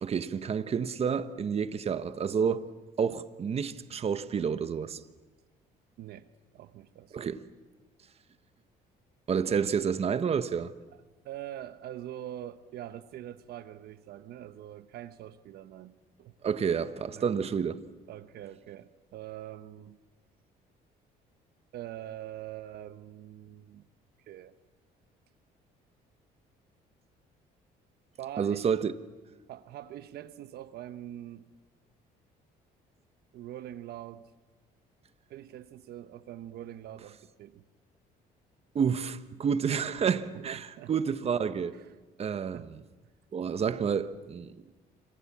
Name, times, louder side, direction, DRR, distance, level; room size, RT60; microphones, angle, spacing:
voice 1, 0.0-2.7 3.0-5.0 7.1-7.4 9.3-10.7 16.4-17.8 28.4-28.9 38.7-41.7 42.2-42.8 43.3-44.5, right 7 dB, 35° right, 1.2 m, -29 dB
voice 2, 6.0-6.3 6.5-7.3 11.2-15.9 16.2-16.4 17.1-17.3 18.1-20.0 21.7-23.9 24.3-24.5 28.2-28.7 29.5-31.5 33.3-34.3 35.3-37.6 40.3-41.2 41.7-41.9 42.5-42.7, right 12 dB, 70° right, 1.1 m, -44 dB
29.0 x 26.0 x 7.4 m
cardioid pair, 110°, 17 cm